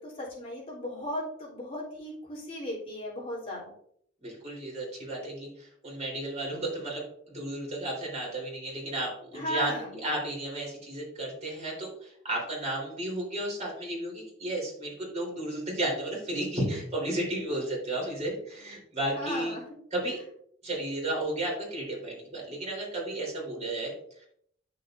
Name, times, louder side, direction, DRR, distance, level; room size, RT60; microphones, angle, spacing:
voice 1, 0.0-3.7 9.3-10.0 19.2-19.6, left 1 dB, 30° left, -6 dB, 3.4 m, -36 dB
voice 2, 4.2-19.5 19.9-20.2 20.6-23.9, right 1 dB, 35° right, -3 dB, 3.7 m, -33 dB
11.0 x 6.8 x 2.6 m, 0.66 s
head